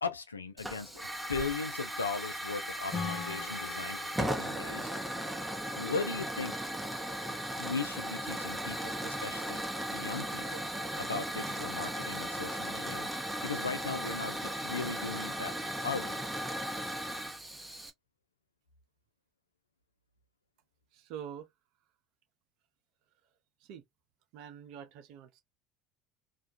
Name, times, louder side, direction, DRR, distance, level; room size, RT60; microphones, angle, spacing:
voice 1, 0.0-4.9 5.7-6.5 7.6-9.6 9.9-10.6 11.0-13.1 13.4-15.6 15.8-16.2, left 4 dB, 90° left, 0.3 m, -38 dB
Hiss / Fire, 0.6-17.9, right 1 dB, 5° right, 0.6 m, -37 dB
Acoustic guitar / Strum, 2.9-6.5, left 5 dB, 55° left, 1.0 m, -42 dB
voice 2, 20.9-21.5 23.6-23.8 24.3-25.4, right 9 dB, 60° right, 0.5 m, -45 dB
2.3 x 2.2 x 2.5 m
figure-of-eight pair, 65°, 0 cm